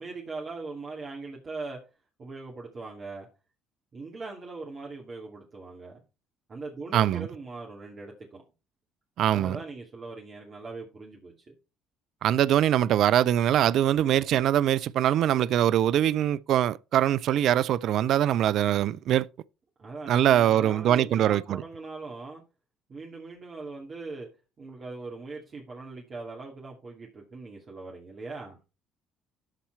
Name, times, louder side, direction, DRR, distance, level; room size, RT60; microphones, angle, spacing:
voice 1, 0.0-1.8 2.2-3.3 3.9-6.0 6.5-8.4 9.3-11.5 19.8-22.4 22.9-24.3 24.6-28.6, right 3 dB, 40° right, 2.4 m, -40 dB
voice 2, 6.9-7.3 9.2-9.6 12.2-19.3 20.1-21.6, right 11 dB, 60° right, 0.4 m, -23 dB
12.5 x 4.3 x 4.5 m
figure-of-eight pair, 50°, 0 cm